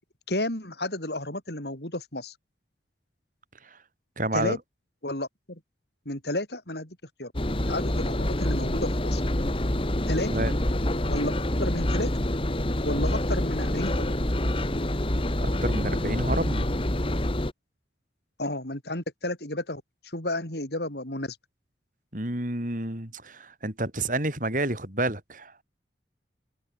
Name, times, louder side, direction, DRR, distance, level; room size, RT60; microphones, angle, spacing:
voice 1, 0.3-2.3 4.3-4.6 5.0-5.6 6.0-7.3 7.7-9.2 10.1-10.3 11.1-12.1 12.8-14.1 18.4-19.8 20.1-21.4, left 1 dB, 65° left, 6.5 m, -32 dB
voice 2, 4.2-4.6 10.3-10.5 15.4-16.7 22.1-25.5, right 2 dB, 50° right, 5.8 m, -29 dB
Engine, 7.3-17.5, left 1 dB, 30° left, 1.8 m, -27 dB
open air
head